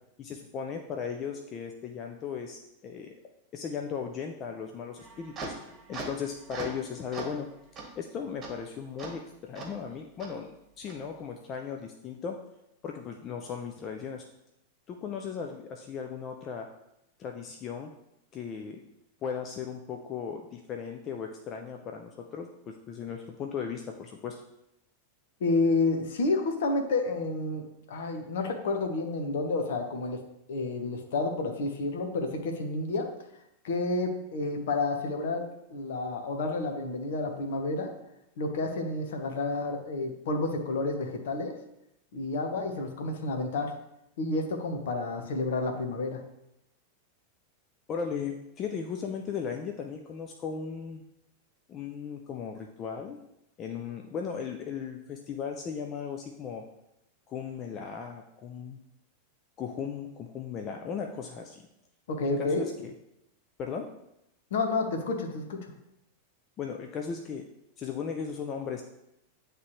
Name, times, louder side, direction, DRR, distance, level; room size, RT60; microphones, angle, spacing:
voice 1, 0.2-3.1 3.5-5.5 5.9-7.5 8.0-12.4 12.8-14.3 14.9-16.7 17.2-17.9 18.3-18.8 19.2-24.4 47.9-51.0 51.7-53.2 53.6-56.7 57.3-58.8 59.6-61.6 62.4-62.9 63.6-63.9 66.6-67.4 67.8-68.8, left 6 dB, 30° left, 3 dB, 0.5 m, -37 dB
sound 1, 5.0-6.8 7.1-7.4 7.8-7.9 8.4-8.5 9.0-9.1 9.5-9.7 10.2-10.3 10.9-11.0, right 3 dB, 25° right, 1.5 m, -40 dB
voice 2, 25.4-30.2 30.5-33.1 33.6-37.9 38.4-41.5 42.1-43.7 44.2-46.2 62.1-62.7 64.5-65.6, left 3 dB, 60° left, 4 dB, 1.0 m, -30 dB
9.3 x 3.3 x 3.1 m, 0.84 s
figure-of-eight pair, 90°, 0 cm